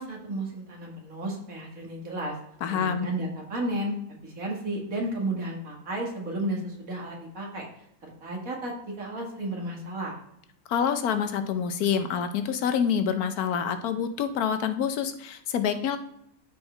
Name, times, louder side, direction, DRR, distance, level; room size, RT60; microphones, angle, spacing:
voice 1, 0.0-2.3 2.7-4.0 4.2-7.6 8.2-10.2, right 1 dB, 65° right, -1 dB, 2.2 m, -33 dB
voice 2, 2.6-3.1 10.7-16.0, left 7 dB, 85° left, 9 dB, 1.2 m, -27 dB
12.5 x 4.5 x 3.3 m, 0.74 s
omnidirectional pair, 1.6 m